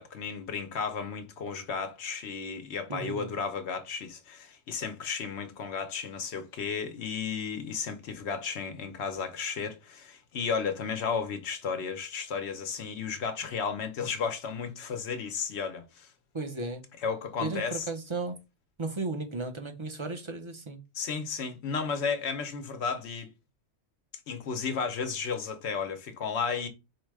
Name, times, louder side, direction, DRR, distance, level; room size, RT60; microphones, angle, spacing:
voice 1, 0.0-16.1 17.0-17.9 20.9-23.3 24.3-26.7, left 5 dB, 75° left, 1.0 m, -33 dB
voice 2, 2.9-3.3 16.3-16.8 17.4-18.4 18.8-20.8, right 3 dB, 35° right, 0.6 m, -35 dB
4.6 x 2.1 x 4.6 m
omnidirectional pair, 1.1 m